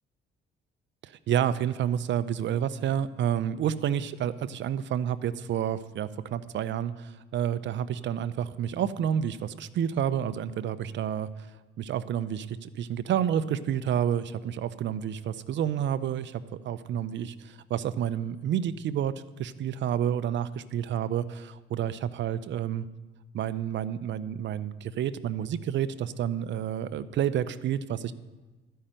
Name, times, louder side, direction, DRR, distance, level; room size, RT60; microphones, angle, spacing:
voice 1, 1.0-11.5 11.8-22.9 23.3-28.1, right 9 dB, 65° right, 14 dB, 0.6 m, -29 dB
13.0 x 5.6 x 8.8 m, 1.2 s
cardioid pair, 90°, 20 cm